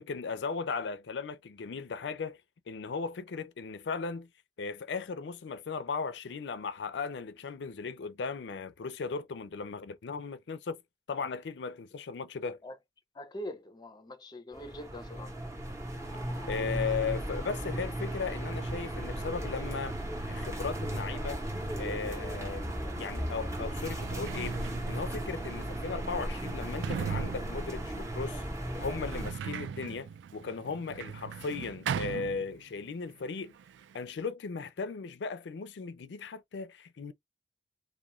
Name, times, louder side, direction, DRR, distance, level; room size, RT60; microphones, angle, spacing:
voice 1, 0.0-2.4 2.7-4.3 4.6-10.8 11.1-12.6 16.4-20.0 20.3-21.4 21.8-24.6 24.9-28.4 28.8-33.5 33.9-37.1, left 5 dB, 75° left, 0.4 m, -37 dB
voice 2, 13.2-15.3, left 1 dB, 25° left, 0.5 m, -43 dB
sound 1, 14.5-29.3, right 1 dB, 15° right, 0.8 m, -36 dB
Sliding door, 23.1-23.2 23.8-33.0 33.2-34.0, right 7 dB, 80° right, 0.3 m, -40 dB
2.3 x 2.2 x 3.0 m
head